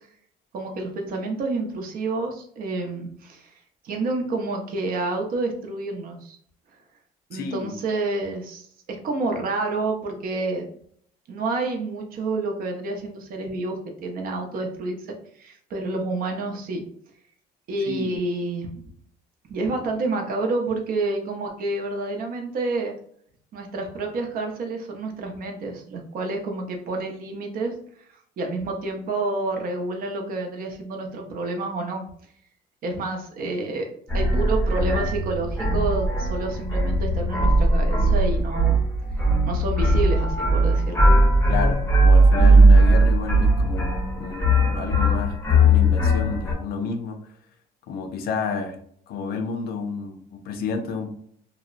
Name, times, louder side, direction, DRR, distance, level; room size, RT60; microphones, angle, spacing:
voice 1, 0.5-3.5 3.8-6.4 7.3-8.7 9.0-10.7 11.3-16.8 17.7-18.8 19.5-22.9 23.5-27.7 28.4-32.1 32.8-33.9 34.1-38.8 39.5-41.0, right 2 dB, 60° right, 3 dB, 0.6 m, -29 dB
voice 2, 7.3-7.7 17.9-18.1 41.5-47.2 47.9-48.8 49.1-51.1, left 5 dB, 65° left, 6 dB, 0.4 m, -30 dB
sound 1, 34.1-46.5, right 1 dB, 15° left, 0.6 m, -19 dB
2.8 x 2.0 x 2.4 m, 0.63 s
cardioid pair, 110°, 17 cm